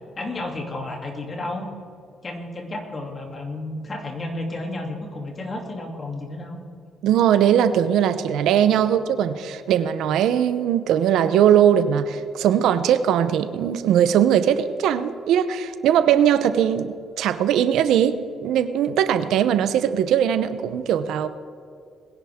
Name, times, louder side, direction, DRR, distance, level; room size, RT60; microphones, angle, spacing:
voice 1, 0.2-1.7 2.2-6.6, left 2 dB, 35° left, 1 dB, 2.8 m, -32 dB
voice 2, 7.0-21.3, right 9 dB, 85° right, 12 dB, 0.7 m, -20 dB
21.0 x 10.5 x 3.6 m, 2.3 s
cardioid pair, 90°, 0 cm